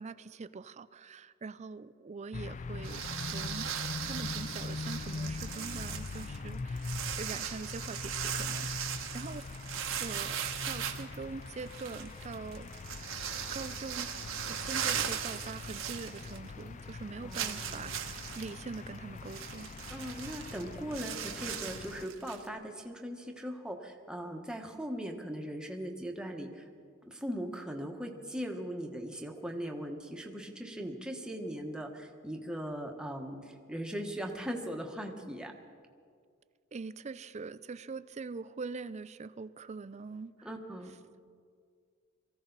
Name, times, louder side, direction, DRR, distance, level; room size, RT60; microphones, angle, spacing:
voice 1, 0.0-9.7 10.0-12.7 13.5-14.1 14.5-19.7 36.7-40.5, right 4 dB, 35° right, 15 dB, 0.4 m, -43 dB
sound 1, 2.3-22.1, left 3 dB, 35° left, 0.3 m, -42 dB
sound 2, 2.8-16.6 16.9-17.0 17.3-22.5, right 9 dB, 65° right, 1.2 m, -38 dB
voice 2, 17.2-18.0 19.9-26.6 27.0-35.5 40.4-40.9, equal, 5° right, 2 dB, 1.3 m, -39 dB
23.5 x 15.5 x 4.0 m, 2.1 s
head